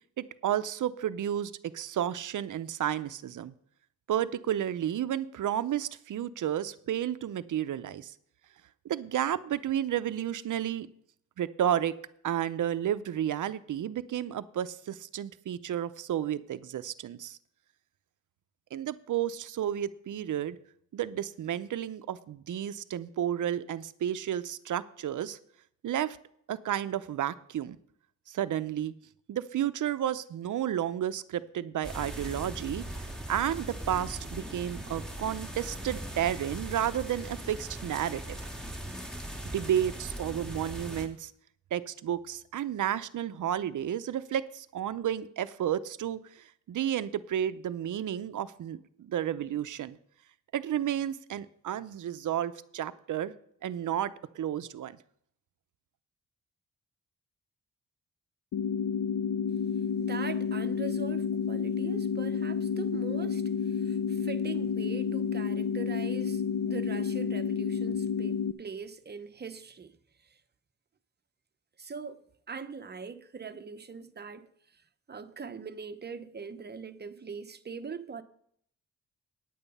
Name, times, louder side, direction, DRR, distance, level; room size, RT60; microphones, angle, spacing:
voice 1, 0.2-3.5 4.1-8.1 8.8-10.9 11.4-11.9 12.2-17.4 18.7-20.6 20.9-25.4 25.8-26.2 26.5-27.8 28.3-28.9 29.3-38.4 39.5-41.3 41.7-50.0 50.5-53.3 53.6-55.0, right 10 dB, 75° right, 0.6 m, -32 dB
sound 1, 31.8-41.1, right 1 dB, ahead, 1.8 m, -40 dB
sound 2, 58.5-68.5, left 6 dB, 60° left, 0.6 m, -30 dB
voice 2, 60.0-70.0 70.3-70.4 71.8-74.5 75.1-78.2, right 5 dB, 35° right, 0.8 m, -41 dB
9.3 x 9.1 x 5.4 m
cardioid pair, 95°, 31 cm